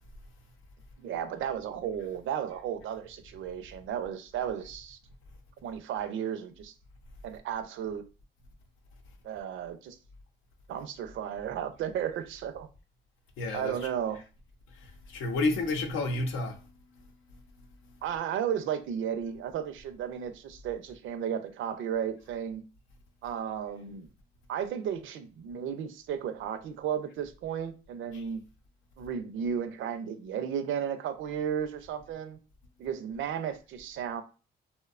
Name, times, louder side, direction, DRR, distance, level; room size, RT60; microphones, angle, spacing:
voice 1, 1.0-5.0 5.6-6.7 7.2-8.0 9.2-10.0 10.7-12.7 13.5-14.2 18.0-22.6 23.2-24.1 24.5-28.4 29.0-32.4 32.8-34.2, right 8 dB, 75° right, 0.5 m, -34 dB
voice 2, 13.4-13.8 14.8-16.6 28.1-28.2, left 2 dB, 80° left, 0.6 m, -30 dB
2.7 x 2.1 x 2.4 m
cardioid pair, 90°, 20 cm